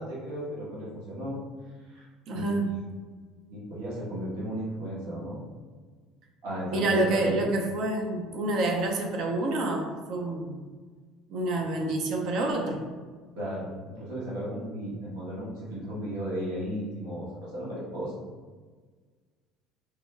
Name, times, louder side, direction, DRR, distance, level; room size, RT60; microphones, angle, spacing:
voice 1, 0.0-1.4 1.9-2.0 2.3-2.6 3.5-5.4 6.4-7.4 13.3-18.1, equal, 90° right, -7 dB, 1.3 m, -35 dB
voice 2, 2.3-2.8 6.7-10.6 11.3-12.9, right 2 dB, 60° right, 2 dB, 0.6 m, -28 dB
3.5 x 2.1 x 3.2 m, 1.5 s
cardioid pair, 120°, 0 cm